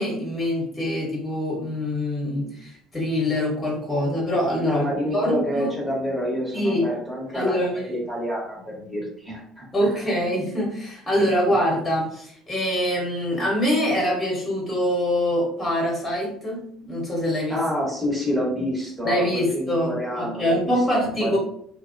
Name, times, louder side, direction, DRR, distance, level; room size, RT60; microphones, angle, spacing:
voice 1, 0.0-5.7 6.5-6.9 7.3-8.0 9.7-17.6 19.0-21.4, equal, 15° left, -3 dB, 1.2 m, -24 dB
voice 2, 4.6-9.9 17.5-21.4, equal, 10° right, -4 dB, 1.2 m, -28 dB
2.6 x 2.2 x 2.6 m, 0.66 s
figure-of-eight pair, 60°, 0 cm